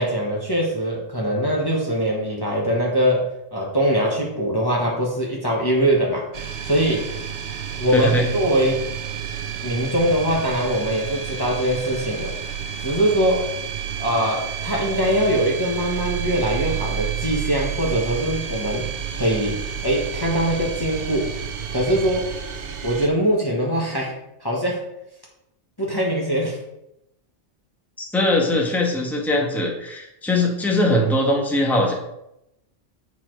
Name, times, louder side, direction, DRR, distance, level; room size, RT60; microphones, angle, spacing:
voice 1, 0.0-6.3 6.6-7.1 7.8-8.8 9.6-12.3 12.8-13.5 14.0-18.9 19.1-21.3 21.7-22.3 22.8-24.1 24.4-24.9 25.8-26.6, equal, 20° left, -3 dB, 1.4 m, -22 dB
sound 1, 6.3-23.1, right 8 dB, 55° right, 0.9 m, -30 dB
voice 2, 7.9-8.3 28.0-31.9, left 1 dB, ahead, -1 dB, 1.4 m, -21 dB
8.3 x 4.8 x 4.7 m, 0.83 s
omnidirectional pair, 1.2 m